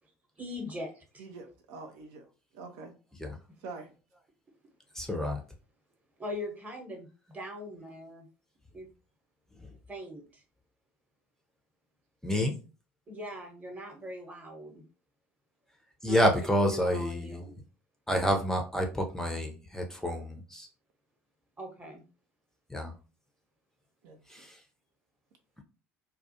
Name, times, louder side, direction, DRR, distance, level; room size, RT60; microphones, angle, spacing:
voice 1, 0.4-1.2 6.2-7.1 7.3-8.3 8.7-8.9 9.9-10.4 13.1-14.8 16.1-16.3 16.7-17.6 21.6-22.0, equal, 20° right, 2 dB, 0.9 m, -41 dB
voice 2, 1.2-2.3 2.5-2.9 3.6-3.9 24.0-24.5, right 3 dB, 65° right, 5 dB, 0.4 m, -45 dB
voice 3, 4.9-5.4 12.2-12.6 16.0-17.4 18.1-20.7 22.7-22.9 24.3-24.6, equal, 5° left, 2 dB, 0.5 m, -28 dB
2.3 x 2.2 x 2.7 m, 0.35 s
hypercardioid pair, 65°, 8 cm